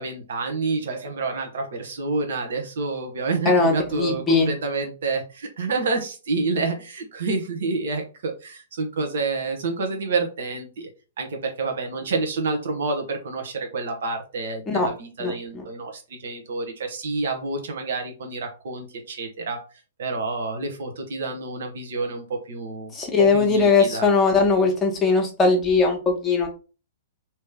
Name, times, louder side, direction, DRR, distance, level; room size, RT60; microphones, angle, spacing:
voice 1, 0.0-10.9 11.2-19.6 20.0-22.9 23.2-24.1, right 3 dB, 55° right, 3 dB, 1.0 m, -28 dB
voice 2, 3.4-4.5 14.7-14.9 15.2-15.6 22.9-26.5, left 4 dB, 15° left, 2 dB, 1.1 m, -20 dB
3.2 x 2.9 x 3.7 m, 0.33 s
figure-of-eight pair, 110°, 0 cm